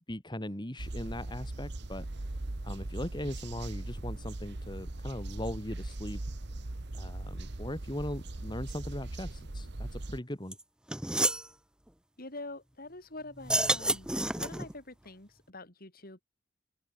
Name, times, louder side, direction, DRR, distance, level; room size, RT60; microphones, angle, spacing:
voice 1, 0.1-2.3 2.6-6.2 6.9-10.6, left 1 dB, 20° left, 2.5 m, -39 dB
sound 1, 0.8-10.2, right 2 dB, 55° right, 1.3 m, -39 dB
sound 2, 10.5-10.6 10.9-11.5 13.4-14.7, right 1 dB, 5° right, 0.8 m, -29 dB
voice 2, 12.2-14.1 14.3-16.2, left 2 dB, 45° left, 4.6 m, -45 dB
open air
head